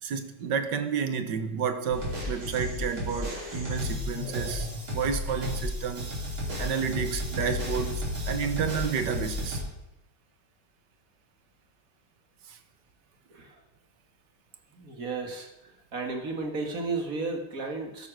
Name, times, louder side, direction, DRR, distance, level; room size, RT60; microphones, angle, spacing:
voice 1, 0.0-6.3 6.6-9.6 12.5-12.6, right 6 dB, 60° right, 1.6 m, -31 dB
sound 1, 1.9-9.6, left 1 dB, 80° right, 5.1 m, -33 dB
voice 2, 14.7-15.5 15.9-18.1, right 3 dB, 40° right, 2.2 m, -33 dB
13.5 x 11.5 x 6.3 m
omnidirectional pair, 2.3 m